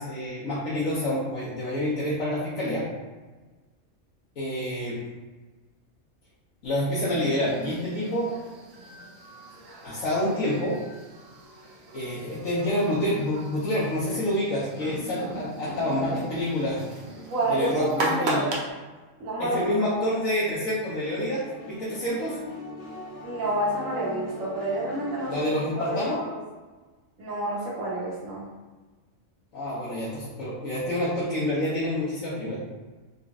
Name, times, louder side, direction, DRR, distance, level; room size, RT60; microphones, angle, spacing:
voice 1, 0.0-2.9 4.4-5.0 6.6-8.3 9.8-10.8 11.9-16.8 17.5-18.4 19.4-22.4 25.3-26.2 29.5-32.6, left 1 dB, 80° left, -10 dB, 1.3 m, -27 dB
sound 1, 6.9-18.7, right 2 dB, 60° right, 0.9 m, -38 dB
voice 2, 17.3-18.5 19.2-19.9 23.2-25.3 25.8-26.0 27.2-28.5, right 1 dB, 80° right, -6 dB, 1.4 m, -29 dB
sound 2, 21.0-26.1, left 1 dB, 50° left, 1.0 m, -41 dB
4.0 x 3.0 x 2.4 m, 1.3 s
omnidirectional pair, 1.4 m